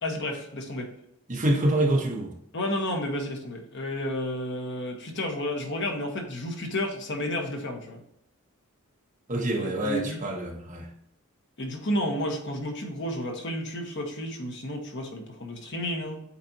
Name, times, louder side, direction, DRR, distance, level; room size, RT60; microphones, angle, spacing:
voice 1, 0.0-0.9 2.5-8.0 9.6-10.2 11.6-16.2, left 1 dB, 55° left, 2 dB, 1.3 m, -31 dB
voice 2, 1.3-2.3 9.3-10.9, right 1 dB, 35° right, 0 dB, 1.3 m, -26 dB
8.3 x 4.3 x 2.9 m, 0.75 s
head